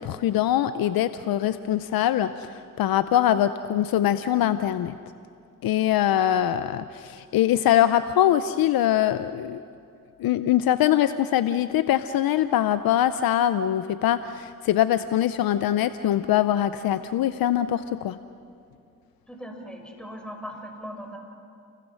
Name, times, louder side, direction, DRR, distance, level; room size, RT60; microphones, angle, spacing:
voice 1, 0.0-5.0 5.6-9.6 10.2-18.2, left 11 dB, 85° left, 12 dB, 0.6 m, -23 dB
voice 2, 19.3-21.2, equal, ahead, 2 dB, 6.4 m, -39 dB
30.0 x 22.0 x 6.4 m, 2.4 s
supercardioid pair, 50°, 35 cm